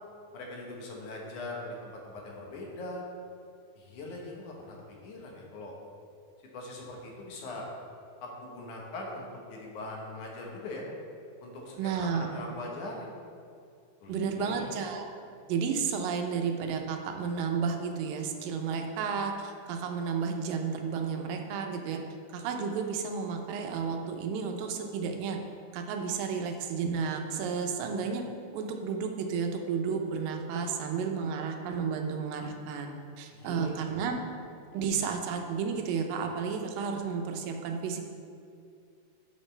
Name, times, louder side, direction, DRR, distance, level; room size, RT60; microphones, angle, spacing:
voice 1, 0.3-3.0 3.8-4.8 5.0-5.7 6.5-7.7 8.2-10.8 11.4-13.2 14.0-14.1 14.4-14.7 33.3-33.9, left 2 dB, 70° left, -1 dB, 2.4 m, -41 dB
voice 2, 11.8-12.3 14.1-15.1 15.5-22.0 22.3-25.4 25.7-28.2 28.5-34.2 34.7-38.0, right 6 dB, 90° right, 4 dB, 2.5 m, -32 dB
11.0 x 6.6 x 3.3 m, 2.4 s
omnidirectional pair, 3.9 m